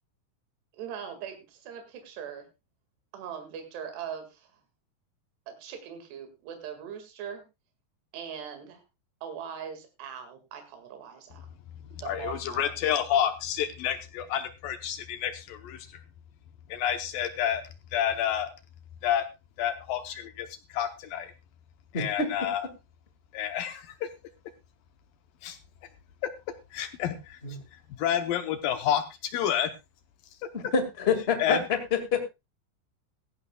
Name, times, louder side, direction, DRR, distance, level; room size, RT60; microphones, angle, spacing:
voice 1, 0.7-2.5 3.1-4.5 5.5-7.4 8.1-8.8 9.2-11.5 12.0-12.7, right 8 dB, 85° right, 5 dB, 4.1 m, -40 dB
voice 2, 12.0-16.0 16.7-17.6 17.9-18.5 19.0-19.3 19.6-21.3 21.9-22.7 23.3-24.1 25.4-25.6 26.7-27.4 27.7-29.7 31.4-31.6, left 10 dB, 70° left, 9 dB, 2.3 m, -29 dB
voice 3, 21.9-22.3 27.4-27.6 30.5-31.6 31.9-32.3, left 5 dB, 40° left, 6 dB, 0.8 m, -27 dB
17.0 x 15.0 x 2.3 m, 0.25 s
omnidirectional pair, 4.7 m